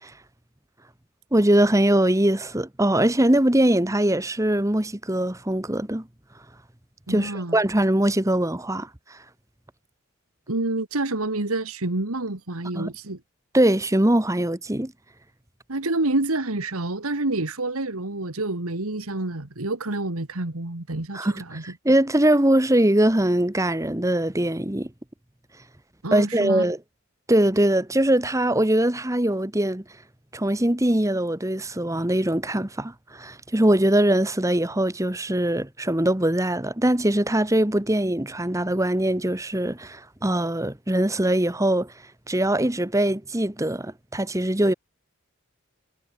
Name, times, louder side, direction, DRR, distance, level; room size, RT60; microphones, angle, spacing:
voice 1, 1.3-6.0 7.1-8.9 12.7-12.9 13.5-14.9 21.1-24.9 26.1-26.8 27.3-29.8 30.3-41.9 42.3-44.7, right 1 dB, 15° right, 1.3 m, -22 dB
voice 2, 7.1-7.6 10.5-13.2 15.7-21.6 26.0-26.6, right 2 dB, 80° right, 2.1 m, -28 dB
head